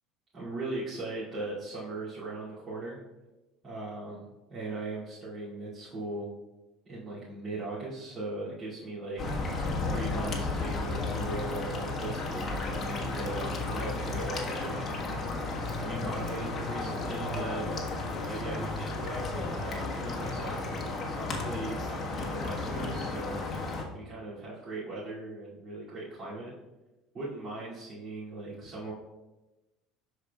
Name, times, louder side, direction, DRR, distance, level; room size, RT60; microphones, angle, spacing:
voice 1, 0.3-3.0 3.6-6.3 6.8-9.2 9.9-15.0 15.8-17.7 18.3-20.8 21.2-23.4 23.9-26.5 27.1-28.9, right 2 dB, 35° right, -12 dB, 2.5 m, -39 dB
sound 1, 9.2-23.8, left 2 dB, 30° left, 1.4 m, -33 dB
12.0 x 4.8 x 2.3 m, 1.1 s
supercardioid pair, 115°, 0 cm